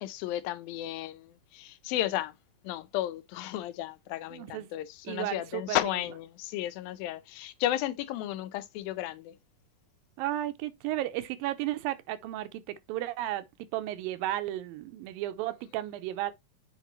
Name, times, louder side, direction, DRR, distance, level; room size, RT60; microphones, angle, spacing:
voice 1, 0.0-2.3 2.6-9.4, left 14 dB, 90° left, 2.5 m, -33 dB
voice 2, 4.3-4.7 5.1-5.8 10.2-13.5 13.7-16.3, right 14 dB, 85° right, 2.5 m, -33 dB
8.1 x 4.6 x 3.0 m
omnidirectional pair, 4.0 m